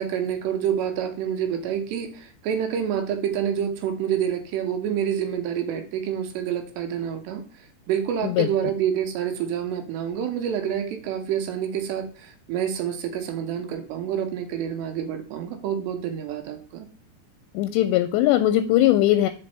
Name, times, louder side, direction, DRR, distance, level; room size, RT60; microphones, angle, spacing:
voice 1, 0.0-16.9, right 9 dB, 75° right, 6 dB, 3.1 m, -28 dB
voice 2, 17.6-19.3, left 14 dB, 85° left, 9 dB, 2.6 m, -20 dB
5.3 x 5.3 x 6.5 m, 0.40 s
omnidirectional pair, 5.2 m